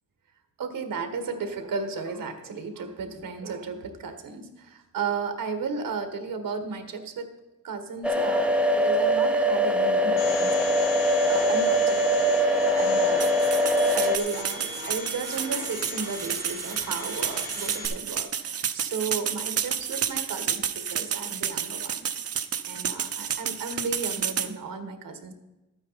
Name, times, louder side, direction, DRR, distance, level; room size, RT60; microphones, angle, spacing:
voice 1, 0.6-7.3 7.6-13.3 13.9-22.1 22.7-25.3, right 5 dB, 80° right, 7 dB, 1.6 m, -34 dB
sound 1, 8.0-14.2, equal, 5° right, 0.5 m, -22 dB
Domestic sounds home sounds, 10.2-17.9, left 2 dB, 75° left, 3.8 m, -37 dB
sound 2, 13.2-24.5, right 8 dB, 45° right, 0.6 m, -30 dB
12.5 x 9.0 x 4.1 m, 1.0 s
wide cardioid pair, 160°, 33 cm